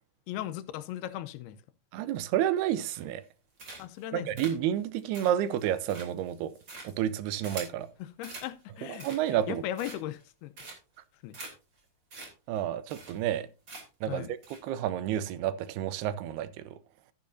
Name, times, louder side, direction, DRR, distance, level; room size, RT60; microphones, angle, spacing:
voice 1, 0.3-1.6 3.8-4.3 8.0-10.6 11.2-11.4 14.1-14.3, left 12 dB, 85° left, 2.7 m, -38 dB
voice 2, 1.9-3.2 4.1-6.5 6.8-7.9 8.9-9.6 12.5-13.5 14.0-16.8, right 11 dB, 85° right, 2.8 m, -30 dB
sound 1, 2.8-3.2 3.6-4.0 4.4-7.8 8.2-8.5 8.9-9.4 9.8-10.2 10.6-11.0 11.3-11.5 11.8-11.9 12.1-12.3 12.6-12.7 12.9-13.4 13.7-14.0 14.4-14.6, right 3 dB, 30° right, 3.2 m, -45 dB
12.5 x 10.5 x 2.6 m
omnidirectional pair, 4.5 m